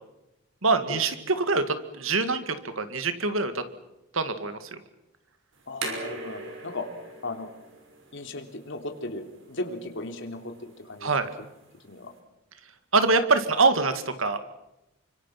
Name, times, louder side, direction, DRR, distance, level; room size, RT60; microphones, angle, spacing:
voice 1, 0.6-3.6 4.1-4.8 11.0-11.3 12.9-14.4, right 3 dB, 80° right, 9 dB, 2.2 m, -24 dB
sound 1, 5.5-12.2, right 3 dB, 65° right, 6.0 m, -41 dB
voice 2, 5.7-6.8 7.2-7.5 8.1-11.1 11.8-12.1, left 2 dB, 65° left, 5 dB, 3.3 m, -36 dB
29.0 x 25.5 x 6.0 m, 0.93 s
head